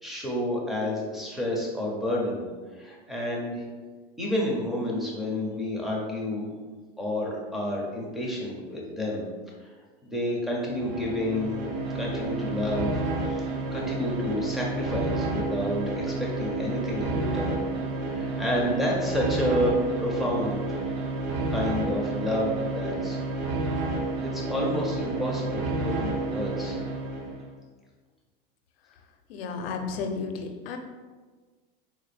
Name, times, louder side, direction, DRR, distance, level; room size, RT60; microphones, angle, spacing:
voice 1, 0.0-2.4 2.7-3.6 4.2-6.5 7.0-9.2 9.6-9.7 10.0-11.5 11.9-17.6 18.0-20.9 21.5-23.4 24.2-26.8, left 1 dB, ahead, -3 dB, 0.4 m, -30 dB
sound 1, 10.7-27.5, right 2 dB, 70° right, 0.7 m, -30 dB
voice 2, 29.3-30.8, left 5 dB, 75° left, 6 dB, 0.6 m, -33 dB
4.1 x 2.1 x 3.3 m, 1.4 s
supercardioid pair, 145°, 30 cm